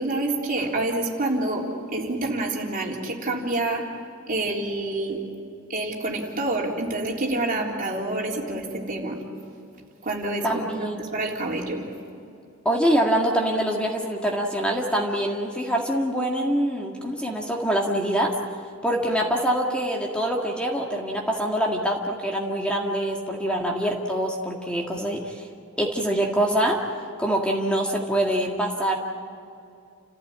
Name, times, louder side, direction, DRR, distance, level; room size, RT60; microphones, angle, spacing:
voice 1, 0.0-3.9 4.3-5.2 5.7-9.2 10.0-10.5 10.8-11.9, right 2 dB, 40° right, -1 dB, 3.5 m, -27 dB
voice 2, 10.4-11.1 12.7-18.3 18.8-25.4 25.8-26.8 27.2-29.0, right 1 dB, 5° left, -1 dB, 1.9 m, -25 dB
30.0 x 15.5 x 8.7 m, 2.5 s
head